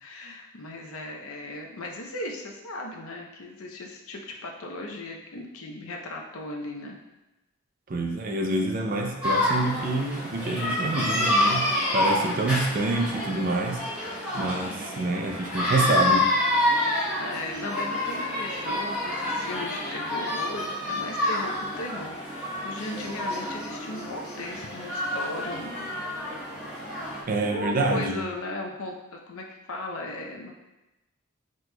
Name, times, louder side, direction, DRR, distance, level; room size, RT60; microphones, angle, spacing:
voice 1, 0.0-7.0 14.7-14.9 17.2-25.8 27.4-30.5, left 1 dB, 75° left, 1 dB, 0.6 m, -37 dB
voice 2, 7.9-11.7 11.9-13.8 14.3-16.3 27.3-28.2, right 2 dB, 40° right, 1 dB, 0.5 m, -27 dB
sound 1, 9.2-27.2, left 1 dB, 5° right, 0.9 m, -28 dB
6.0 x 3.0 x 2.2 m, 1.0 s
head